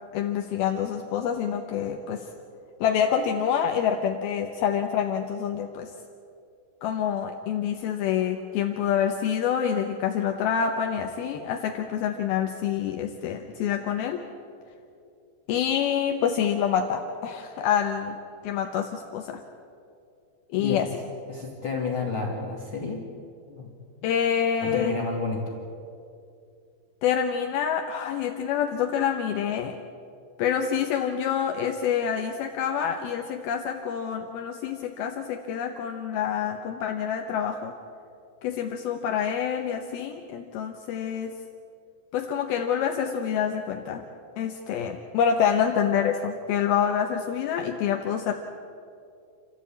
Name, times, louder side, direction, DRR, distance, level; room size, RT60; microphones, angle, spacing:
voice 1, 0.1-2.2 2.8-5.9 6.8-14.2 15.5-18.2 18.4-19.4 20.5-20.9 24.0-25.0 27.0-29.8 30.4-37.7 38.4-41.3 42.1-44.0 44.4-48.3, left 8 dB, 80° left, 4 dB, 2.2 m, -27 dB
voice 2, 21.3-23.0 23.5-23.7 24.6-25.6, left 4 dB, 65° left, -2 dB, 1.3 m, -30 dB
28.5 x 14.5 x 8.5 m, 2.5 s
omnidirectional pair, 5.7 m